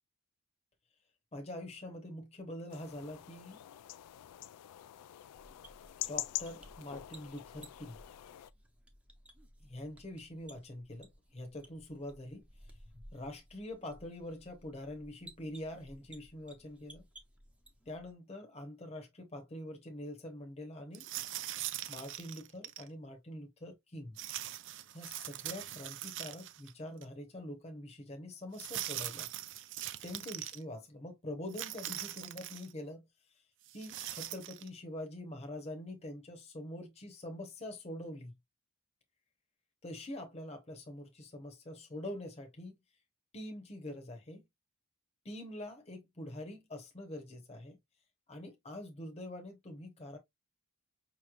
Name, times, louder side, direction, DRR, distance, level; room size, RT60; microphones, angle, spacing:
voice 1, 1.3-3.6 6.1-8.0 9.6-12.4 13.1-17.1 17.9-21.1 21.9-24.2 24.9-29.3 30.0-33.1 33.7-38.3 39.8-42.7 43.3-44.5 45.2-47.8 48.3-50.2, left 1 dB, 30° left, 0.9 m, -45 dB
sound 1, 2.7-8.5, left 15 dB, 90° left, 0.3 m, -45 dB
sound 2, 5.3-18.1, right 1 dB, 5° right, 0.7 m, -58 dB
sound 3, 20.9-22.9 24.2-26.7 27.0-27.1 28.5-30.6 31.5-32.7 33.7-34.7, right 13 dB, 55° right, 0.4 m, -42 dB
5.3 x 3.1 x 2.3 m
head